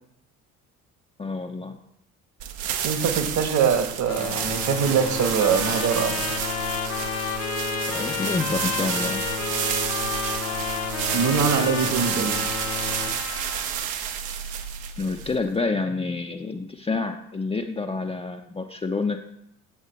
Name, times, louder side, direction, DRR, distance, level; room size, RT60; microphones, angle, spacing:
voice 1, 1.2-1.8 7.9-9.3 15.0-19.2, left 3 dB, 15° left, 4 dB, 0.7 m, -28 dB
sound 1, 2.4-15.5, right 9 dB, 65° right, 1.0 m, -30 dB
voice 2, 2.8-6.3 11.1-12.3, right 6 dB, 45° right, 7 dB, 1.4 m, -23 dB
sound 2, 4.1-13.1, left 5 dB, 60° left, 1.2 m, -34 dB
Trumpet, 4.9-13.8, left 7 dB, 35° left, 0.9 m, -32 dB
8.5 x 8.0 x 3.3 m, 0.76 s
figure-of-eight pair, 50°, 42 cm